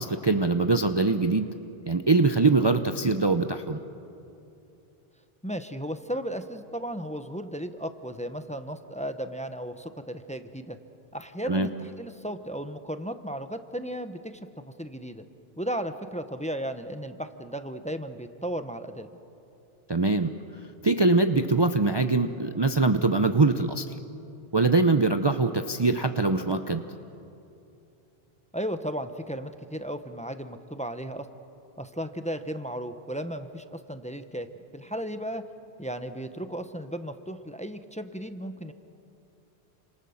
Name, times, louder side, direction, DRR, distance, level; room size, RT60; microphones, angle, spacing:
voice 1, 0.0-1.5 1.9-3.8 11.5-11.7 19.9-20.3 20.8-23.9 24.5-26.8, right 3 dB, 30° right, 7 dB, 0.7 m, -23 dB
voice 2, 5.4-10.8 11.1-15.2 15.6-19.1 28.5-31.3 31.8-34.5 34.7-35.4 35.8-38.7, equal, 5° left, 8 dB, 1.0 m, -35 dB
29.5 x 26.5 x 7.2 m, 2.8 s
omnidirectional pair, 1.0 m